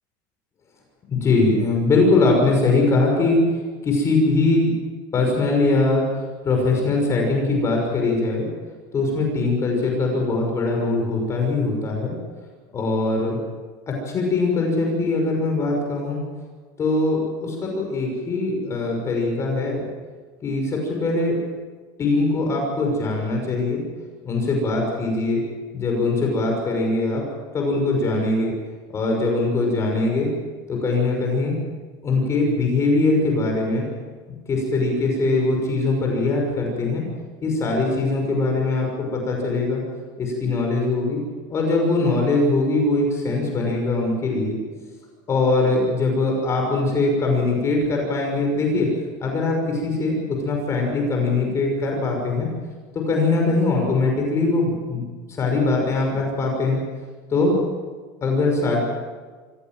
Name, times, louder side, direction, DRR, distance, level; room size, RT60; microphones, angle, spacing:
voice 1, 1.1-3.4 3.8-4.7 5.1-6.0 6.4-8.5 8.9-12.1 12.7-13.4 13.9-16.2 16.8-19.8 20.4-21.4 22.0-23.8 24.2-25.4 25.7-27.2 27.5-28.5 28.9-30.3 30.7-31.6 32.0-33.9 34.5-37.0 37.4-39.8 40.2-41.2 41.5-44.5 45.3-48.9 49.2-52.5 52.9-56.8 57.3-57.6 58.2-58.8, left 3 dB, 25° left, 1 dB, 6.0 m, -21 dB
26.0 x 16.5 x 7.7 m, 1.4 s
supercardioid pair, 145°, 11 cm